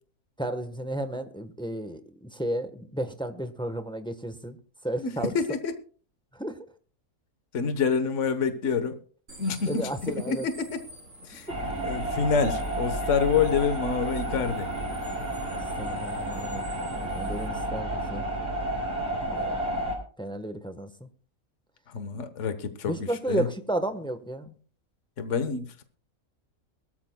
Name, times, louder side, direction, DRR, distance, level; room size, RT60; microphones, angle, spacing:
voice 1, 0.4-4.6 4.8-5.3 6.3-6.6 9.7-10.5 15.5-18.2 19.3-19.9 20.2-21.1 22.8-24.5, right 1 dB, 5° left, 8 dB, 0.9 m, -33 dB
voice 2, 5.0-5.7 7.5-9.0 9.4-10.8 11.2-14.7 21.9-23.5 25.2-25.8, left 5 dB, 55° left, 9 dB, 1.5 m, -27 dB
sound 1, 9.3-17.5, right 2 dB, 60° right, 3.9 m, -50 dB
sound 2, 11.5-20.0, right 1 dB, 30° right, 4.6 m, -31 dB
22.0 x 13.5 x 2.3 m, 0.43 s
omnidirectional pair, 1.5 m